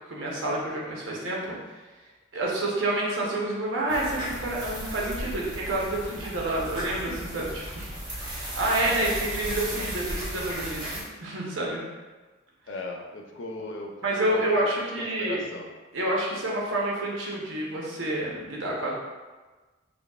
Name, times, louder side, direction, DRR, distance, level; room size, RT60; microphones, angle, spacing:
voice 1, 0.1-1.6 2.3-7.9 8.2-10.9 11.2-11.8 14.0-15.4 15.9-18.9, right 1 dB, 75° right, -3 dB, 0.8 m, -28 dB
sound 1, 3.9-11.0, equal, 20° right, 0.7 m, -35 dB
voice 2, 8.8-9.2 12.7-14.7 15.0-15.7, left 2 dB, 70° left, 2 dB, 0.4 m, -38 dB
5.0 x 2.3 x 2.3 m, 1.3 s
head